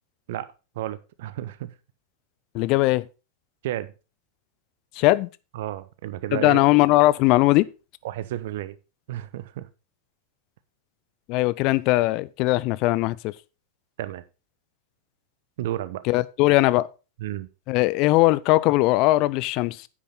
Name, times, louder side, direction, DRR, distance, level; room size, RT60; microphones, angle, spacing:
voice 1, 0.8-1.7 3.6-3.9 5.5-6.6 8.0-8.8 9.1-9.7 14.0-14.2 15.6-16.0 17.2-17.5, right 13 dB, 55° right, 0.8 m, -31 dB
voice 2, 2.5-3.1 5.0-5.3 6.3-7.7 11.3-13.3 16.0-16.9 17.7-19.9, left 19 dB, 40° left, 0.5 m, -20 dB
9.9 x 8.5 x 3.8 m
figure-of-eight pair, 90°, 0 cm